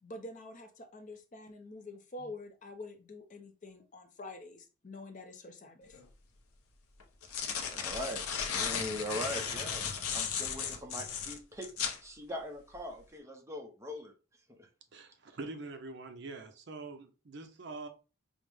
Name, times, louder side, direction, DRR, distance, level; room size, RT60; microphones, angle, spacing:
voice 1, 0.0-6.0, left 2 dB, 35° left, 0.5 m, -47 dB
sound 1, 5.9-6.0 7.0-12.0, left 7 dB, 90° left, 0.6 m, -35 dB
voice 2, 7.7-8.2 8.5-11.7 12.0-14.1 14.5-14.7, left 1 dB, 15° right, 0.6 m, -41 dB
voice 3, 14.9-17.9, right 3 dB, 50° right, 0.6 m, -44 dB
4.8 x 2.1 x 3.3 m
head